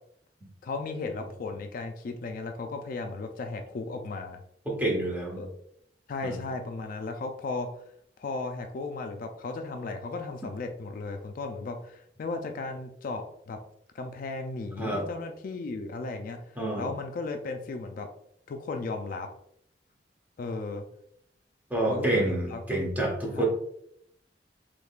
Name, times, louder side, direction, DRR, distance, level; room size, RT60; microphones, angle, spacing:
voice 1, 0.6-4.4 5.3-5.5 6.1-7.7 8.2-13.6 13.9-18.1 18.5-19.3 20.4-20.8 21.9-22.6 23.3-23.4, left 3 dB, 50° left, 6 dB, 0.3 m, -35 dB
voice 2, 4.7-5.5 6.2-6.4 14.8-15.1 16.6-16.9 21.7-23.5, right 1 dB, 10° right, -2 dB, 0.9 m, -28 dB
3.5 x 3.1 x 2.3 m, 0.71 s
head